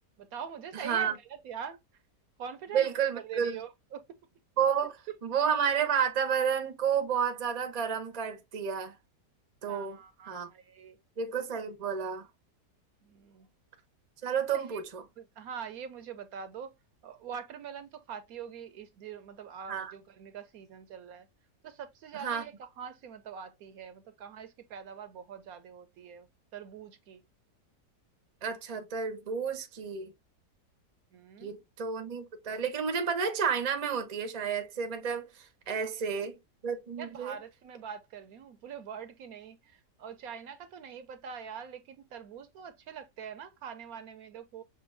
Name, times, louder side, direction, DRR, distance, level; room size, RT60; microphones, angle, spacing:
voice 1, 0.2-1.8 2.4-4.0 9.7-11.0 13.1-13.5 14.5-14.8 15.2-16.8 17.0-21.3 21.6-26.3 26.5-27.2 31.1-31.6 35.8-36.3 37.0-44.6, right 7 dB, 70° right, 0.9 m, -44 dB
voice 2, 0.7-1.1 2.7-3.6 4.6-8.9 9.6-10.0 10.3-10.5 11.2-12.3 14.2-15.0 19.7-19.9 22.1-22.4 28.4-30.1 31.4-35.3 35.7-36.4 36.6-37.3, right 7 dB, 40° right, 0.5 m, -31 dB
6.0 x 2.6 x 2.5 m
omnidirectional pair, 1.8 m